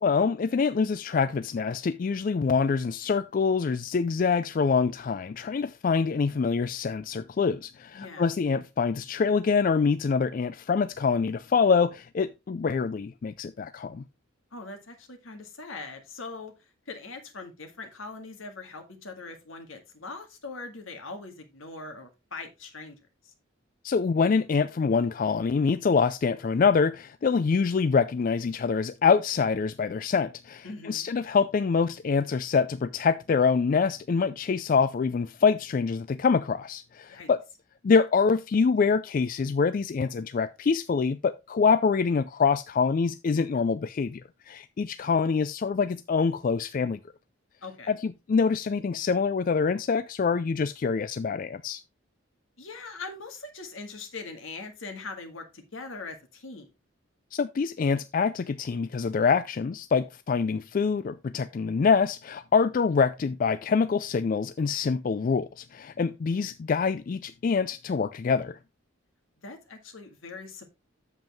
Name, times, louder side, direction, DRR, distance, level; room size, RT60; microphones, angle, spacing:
voice 1, 0.0-14.0 23.8-37.4 37.8-47.0 47.9-51.8 57.3-68.6, left 5 dB, 40° left, 0.3 m, -25 dB
voice 2, 7.9-8.3 14.5-16.5 16.9-23.0 23.2-23.3 30.6-31.1 37.1-37.3 47.6-47.9 52.6-56.7 69.4-70.7, left 3 dB, 75° left, 1.9 m, -41 dB
7.8 x 7.3 x 3.5 m
head